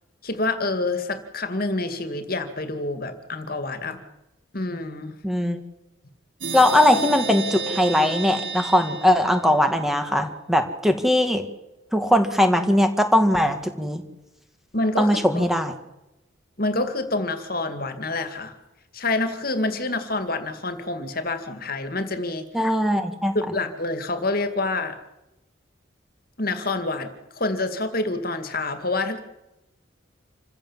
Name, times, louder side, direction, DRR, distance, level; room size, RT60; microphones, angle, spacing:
voice 1, 0.2-4.0 4.5-5.2 14.7-15.5 16.6-18.6 18.9-22.5 23.3-25.0 26.4-29.2, left 2 dB, 45° left, 8 dB, 2.3 m, -27 dB
voice 2, 5.2-5.6 6.5-11.4 11.9-14.0 15.0-15.7 22.5-23.3, left 1 dB, ahead, 6 dB, 1.9 m, -20 dB
sound 1, 6.4-10.0, right 3 dB, 75° right, 4.3 m, -31 dB
27.5 x 15.5 x 7.4 m, 0.96 s
head